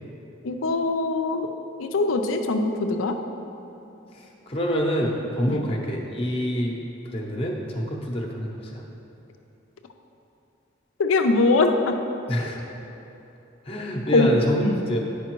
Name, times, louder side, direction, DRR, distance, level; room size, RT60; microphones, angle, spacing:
voice 1, 0.4-1.5 1.8-3.2 5.5-5.7 11.0-12.0 14.1-14.3 14.6-14.8, left 3 dB, 85° left, 6 dB, 0.5 m, -22 dB
voice 2, 4.5-6.8 7.1-8.8 12.3-12.6 13.7-15.0, equal, 30° left, 0 dB, 0.7 m, -26 dB
10.0 x 5.0 x 3.0 m, 2.9 s
head